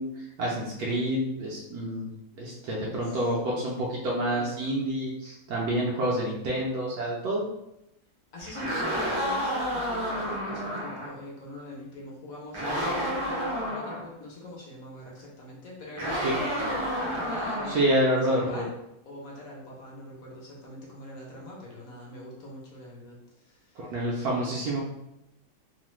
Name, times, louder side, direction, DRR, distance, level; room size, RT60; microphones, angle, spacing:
voice 1, 0.0-2.1 2.4-7.4 16.1-16.3 17.7-18.6 23.8-24.8, right 1 dB, 75° right, -4 dB, 1.0 m, -28 dB
voice 2, 2.9-3.2 4.3-4.5 8.3-16.7 17.3-18.7 19.1-23.9, left 1 dB, 65° left, -3 dB, 1.1 m, -43 dB
sound 1, 8.4-11.1 12.5-14.0 16.0-17.9, equal, 45° right, 0.4 m, -30 dB
3.1 x 2.0 x 3.0 m, 0.87 s
omnidirectional pair, 1.8 m